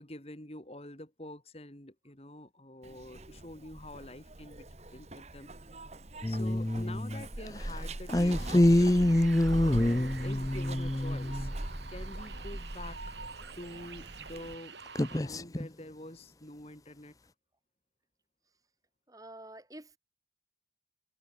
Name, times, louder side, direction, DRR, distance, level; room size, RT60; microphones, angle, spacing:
voice 1, 0.0-4.7 4.9-5.5 6.2-8.9 9.6-11.5 11.9-13.2 13.6-14.7 15.2-17.2, left 1 dB, 35° left, 3.5 m, -46 dB
Zipper (clothing), 2.8-14.6, right 1 dB, 35° right, 1.6 m, -42 dB
sound 1, 6.2-7.6 8.1-11.5 14.9-15.7, left 1 dB, 20° left, 0.7 m, -26 dB
sound 2, 8.1-15.2, right 5 dB, 80° right, 7.3 m, -48 dB
voice 2, 19.1-20.0, right 1 dB, 20° right, 4.4 m, -49 dB
head